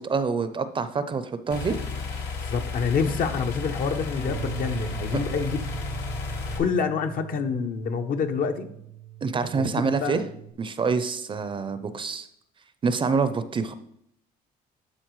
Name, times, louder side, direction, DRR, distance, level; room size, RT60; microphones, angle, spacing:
voice 1, 0.0-1.8 9.2-10.2 10.6-12.3 12.8-13.7, right 5 dB, 30° right, 12 dB, 0.5 m, -26 dB
sound 1, 1.5-6.6, left 4 dB, 80° left, 1.4 m, -33 dB
voice 2, 2.3-5.6 6.6-8.7 9.5-10.3, left 5 dB, 55° left, 7 dB, 0.8 m, -27 dB
Bass guitar, 4.3-10.5, right 10 dB, 75° right, 0.7 m, -40 dB
12.0 x 4.1 x 3.1 m, 0.74 s
cardioid pair, 110°, 17 cm